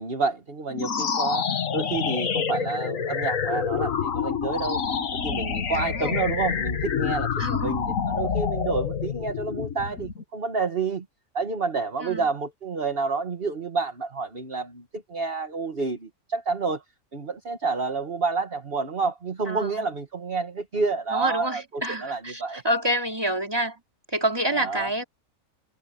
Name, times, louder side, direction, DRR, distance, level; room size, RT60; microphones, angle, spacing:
voice 1, 0.0-4.8 5.2-11.1 11.3-16.8 17.1-22.6 24.5-24.9, right 4 dB, 45° right, 1.8 m, -29 dB
sound 1, 0.7-10.2, left 7 dB, 80° left, 1.7 m, -27 dB
voice 2, 5.7-6.2 7.4-7.7 12.0-12.2 19.5-19.9 21.1-23.8 24.1-25.0, right 1 dB, 15° right, 3.9 m, -28 dB
omnidirectional pair, 1.4 m